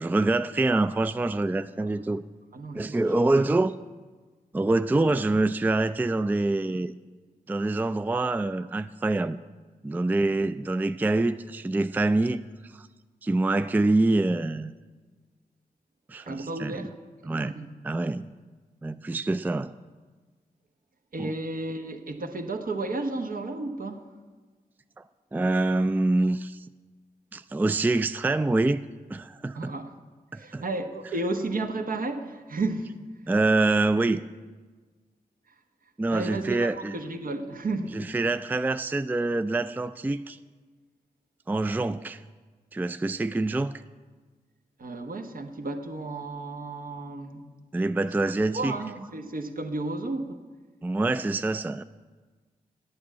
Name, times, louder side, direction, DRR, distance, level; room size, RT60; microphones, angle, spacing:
voice 1, 0.0-2.2 2.7-3.7 4.5-6.9 7.5-9.4 9.8-12.9 13.2-14.7 16.1-16.9 17.3-17.5 17.8-18.3 18.8-19.7 21.2-21.3 25.3-26.7 27.3-28.8 29.1-29.7 30.3-30.6 33.3-34.2 36.0-37.0 37.9-40.4 41.5-42.2 42.7-43.8 47.7-48.7 50.8-51.8, right 2 dB, 10° right, 13 dB, 0.3 m, -25 dB
voice 2, 2.5-3.5 16.2-16.9 17.2-17.7 21.1-24.1 29.5-29.9 30.3-33.0 36.1-38.0 44.8-47.5 48.5-50.4, right 2 dB, 65° right, 5 dB, 1.0 m, -33 dB
8.7 x 8.2 x 7.5 m, 1.4 s
cardioid pair, 45°, 16 cm